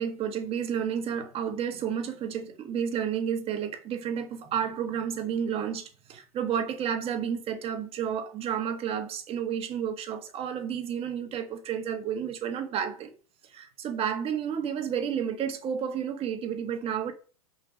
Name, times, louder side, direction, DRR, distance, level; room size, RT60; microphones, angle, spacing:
voice 1, 0.0-13.1 13.4-17.1, right 8 dB, 30° right, 1.6 m, -31 dB
6.1 x 5.7 x 5.2 m
hypercardioid pair, 105°, 19 cm